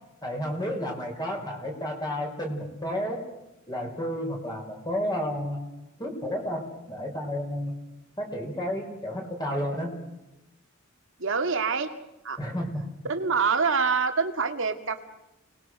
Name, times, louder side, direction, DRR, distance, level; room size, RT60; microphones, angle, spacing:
voice 1, 0.2-3.2 3.7-5.6 6.0-7.7 8.2-9.9 12.4-12.7, equal, 20° left, 1 dB, 5.1 m, -31 dB
voice 2, 11.2-11.9 12.2-12.4 13.1-15.0, right 5 dB, 65° right, 7 dB, 2.2 m, -25 dB
30.0 x 20.5 x 6.3 m, 0.94 s
head